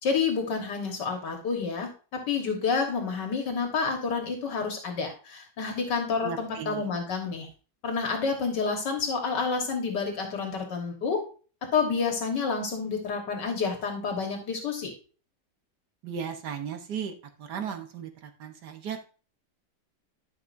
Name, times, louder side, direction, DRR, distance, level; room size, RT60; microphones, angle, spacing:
voice 1, 0.0-7.5 7.8-11.2 11.7-14.9, left 5 dB, 75° left, 3 dB, 2.0 m, -29 dB
voice 2, 6.2-6.8 16.0-17.1 17.4-19.0, right 7 dB, 70° right, 6 dB, 1.5 m, -36 dB
12.5 x 5.9 x 2.6 m, 0.36 s
omnidirectional pair, 1.9 m